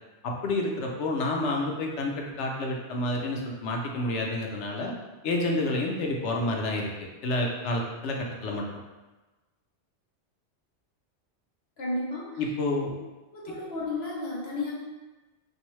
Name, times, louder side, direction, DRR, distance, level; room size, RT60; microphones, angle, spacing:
voice 1, 0.2-4.9 5.2-6.9 7.2-8.2 8.4-8.6 12.4-12.9, left 2 dB, 90° left, 0 dB, 0.9 m, -29 dB
voice 2, 11.8-12.4 13.3-14.7, left 2 dB, 65° left, -5 dB, 1.1 m, -32 dB
3.4 x 2.7 x 3.0 m, 1.2 s
omnidirectional pair, 1.1 m